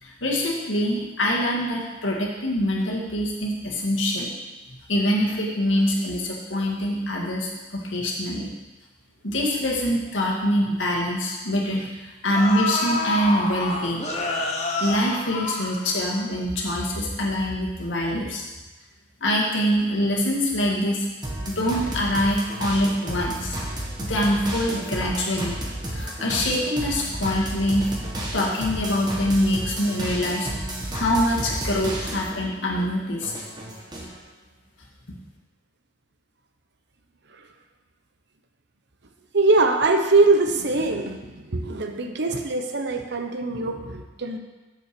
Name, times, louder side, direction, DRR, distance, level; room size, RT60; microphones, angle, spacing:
voice 1, 0.0-4.3 4.7-8.5 9.2-14.0 14.8-18.4 19.2-21.1 21.5-23.6 24.1-25.6 25.9-27.9 28.3-30.5 30.9-33.3 35.1-35.2, equal, 90° left, -2 dB, 1.9 m, -24 dB
sound 1, 10.8-10.9 11.8-11.9 12.3-16.3 16.6-16.7, left 2 dB, 35° left, 1.2 m, -28 dB
sound 2, 21.2-32.4 32.8-34.1, right 1 dB, 25° right, 1.5 m, -32 dB
voice 2, 39.3-41.2 41.5-44.4, right 3 dB, 65° right, 5 dB, 0.9 m, -22 dB
7.1 x 5.7 x 6.9 m, 1.2 s
head